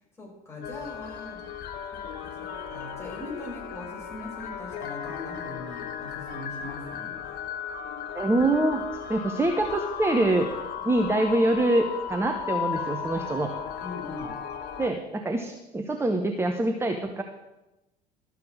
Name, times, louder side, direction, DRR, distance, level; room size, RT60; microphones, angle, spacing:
voice 1, 0.2-1.6 1.9-7.2 13.8-14.4, left 2 dB, 10° left, -3 dB, 4.9 m, -41 dB
sound 1, 0.6-14.9, left 8 dB, 50° left, 1.1 m, -36 dB
voice 2, 8.1-8.8 9.1-10.5 10.8-13.5 14.8-17.2, right 2 dB, 10° right, 5 dB, 0.9 m, -25 dB
12.5 x 7.1 x 6.3 m, 1.0 s
figure-of-eight pair, 65°, 21 cm